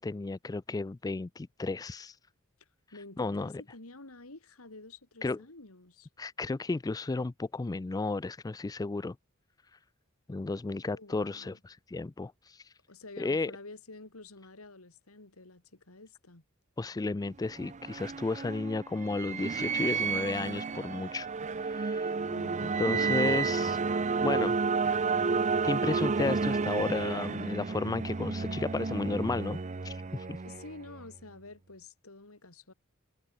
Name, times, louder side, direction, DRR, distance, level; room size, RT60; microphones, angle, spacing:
voice 1, 0.0-2.1 3.2-3.5 5.2-5.4 6.2-9.2 10.3-12.6 13.2-13.5 16.8-21.3 21.6-22.1 22.6-24.6 25.6-29.6 29.8-30.3, left 3 dB, 15° left, 0.3 m, -33 dB
voice 2, 2.6-6.1 10.9-11.6 12.9-16.4 22.3-22.7 30.4-32.7, left 2 dB, 85° left, 3.0 m, -50 dB
sound 1, 17.3-31.0, right 4 dB, 35° right, 0.6 m, -31 dB
head